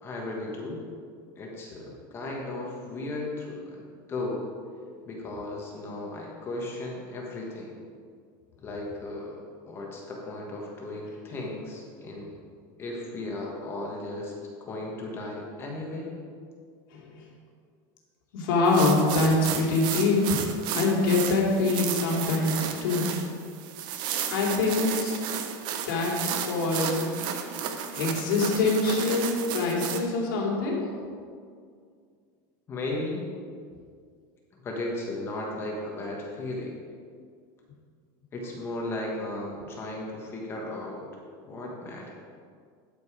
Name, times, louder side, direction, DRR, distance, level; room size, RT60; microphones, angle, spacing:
voice 1, 0.0-0.8 1.4-3.8 4.1-4.5 5.0-7.7 8.6-12.3 12.8-14.3 14.6-16.1 32.7-33.2 34.5-36.7 38.3-41.0 41.4-42.1, left 2 dB, 20° left, -2 dB, 1.3 m, -35 dB
voice 2, 18.3-20.4 20.7-23.1 24.3-25.2 25.8-27.1 27.9-30.9, left 3 dB, 70° left, -2 dB, 2.6 m, -24 dB
sound 1, 18.7-30.0, right 8 dB, 45° right, 0.8 m, -33 dB
12.5 x 5.3 x 5.0 m, 2.1 s
supercardioid pair, 165°, 11 cm